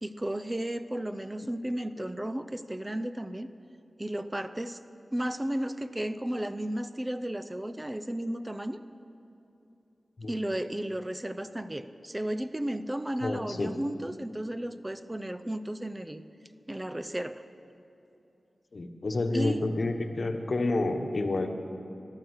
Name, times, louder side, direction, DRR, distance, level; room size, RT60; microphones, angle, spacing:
voice 1, 0.0-3.5 4.0-4.8 5.1-8.8 10.3-16.2 16.7-17.4 19.3-19.7, right 1 dB, 15° right, 11 dB, 0.6 m, -33 dB
voice 2, 13.2-13.7 18.7-21.6, left 2 dB, 55° left, 5 dB, 1.2 m, -29 dB
14.0 x 11.5 x 8.1 m, 2.9 s
wide cardioid pair, 80°, 0 cm